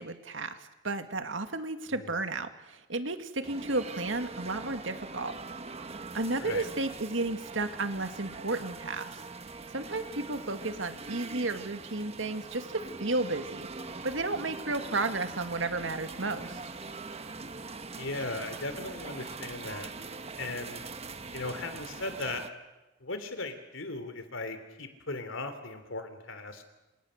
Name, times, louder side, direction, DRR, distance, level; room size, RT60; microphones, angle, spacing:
voice 1, 0.0-5.4 6.1-9.1 9.7-13.7 14.0-16.6, right 2 dB, 75° right, 8 dB, 2.1 m, -33 dB
sound 1, 3.4-22.5, right 3 dB, 35° right, 1.3 m, -42 dB
voice 2, 18.0-19.9 20.4-20.8 21.3-22.4 23.0-26.7, left 2 dB, 80° left, 9 dB, 3.3 m, -37 dB
28.0 x 28.0 x 6.6 m, 1.1 s
head